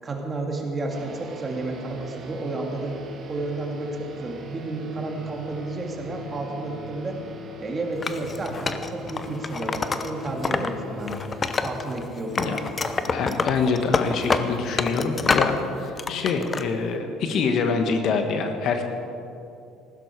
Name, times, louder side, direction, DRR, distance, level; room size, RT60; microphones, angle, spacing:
voice 1, 0.0-3.0 3.3-7.2 7.6-11.2 11.6-12.6, right 2 dB, 30° right, 1 dB, 2.6 m, -31 dB
sound 1, 0.9-15.7, left 1 dB, 50° right, 1.5 m, -43 dB
Wood, 8.0-10.7 11.0-12.0 12.3-15.6 16.0-16.6, left 4 dB, 30° left, 0.9 m, -26 dB
sound 2, 10.5-12.7 13.1-17.0, left 6 dB, 75° left, 0.7 m, -42 dB
voice 2, 13.1-18.8, left 5 dB, 60° left, 6 dB, 1.4 m, -25 dB
15.5 x 12.5 x 4.7 m, 2.7 s
supercardioid pair, 75°, 0 cm